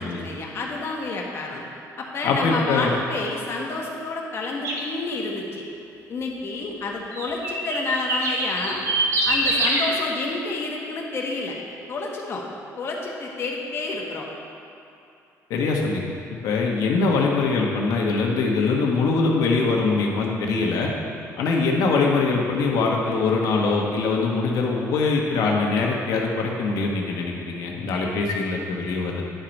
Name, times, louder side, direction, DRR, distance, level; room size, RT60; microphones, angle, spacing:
voice 1, 0.0-1.6 2.0-5.6 6.1-8.8 9.2-11.6 11.9-12.4 12.8-14.3, left 3 dB, 45° left, -1 dB, 1.2 m, -29 dB
voice 2, 2.2-2.9 15.5-16.0 16.4-20.9 21.4-29.3, left 4 dB, 80° left, -1 dB, 1.2 m, -23 dB
Birds chirping, 4.6-4.9 7.1-9.8, right 2 dB, 55° right, 1.4 m, -24 dB
10.5 x 4.5 x 5.2 m, 2.8 s
cardioid pair, 135°, 6 cm